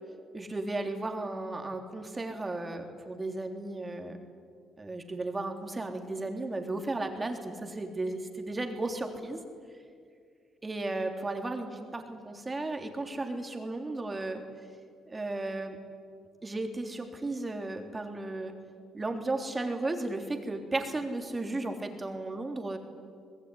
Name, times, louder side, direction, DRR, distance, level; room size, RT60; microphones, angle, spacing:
voice 1, 0.3-4.2 4.8-9.4 10.6-14.4 15.1-15.8 16.4-18.5 18.9-22.8, right 2 dB, 25° right, 4 dB, 3.5 m, -34 dB
25.5 x 20.5 x 10.0 m, 2.2 s
cardioid pair, 90°, 0 cm